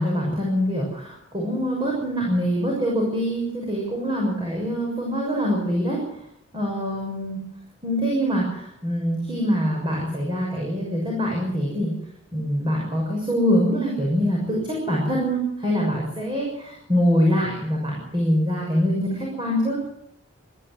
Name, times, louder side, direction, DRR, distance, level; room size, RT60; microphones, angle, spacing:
voice 1, 0.0-6.0 6.5-7.4 7.8-11.9 12.3-19.8, equal, 25° right, -2 dB, 6.6 m, -24 dB
21.5 x 15.5 x 9.7 m, 0.76 s
head